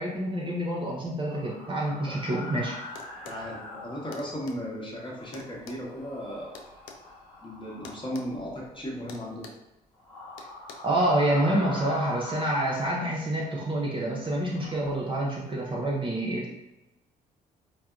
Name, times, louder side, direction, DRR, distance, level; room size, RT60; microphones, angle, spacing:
voice 1, 0.0-2.8 10.8-16.5, right 1 dB, 25° right, -3 dB, 0.7 m, -27 dB
sound 1, 1.3-4.7 5.0-9.0 9.9-13.6 14.1-15.0, left 1 dB, 90° left, 1.0 m, -43 dB
sound 2, 2.9-3.4 4.1-4.6 5.3-7.0 7.8-8.3 8.6-8.7 9.1-9.7 10.4-10.7, left 5 dB, 65° left, 0.5 m, -46 dB
voice 2, 3.2-6.6 7.4-9.4, equal, 25° left, -3 dB, 1.1 m, -36 dB
4.5 x 2.0 x 2.4 m, 0.97 s
figure-of-eight pair, 45°, 21 cm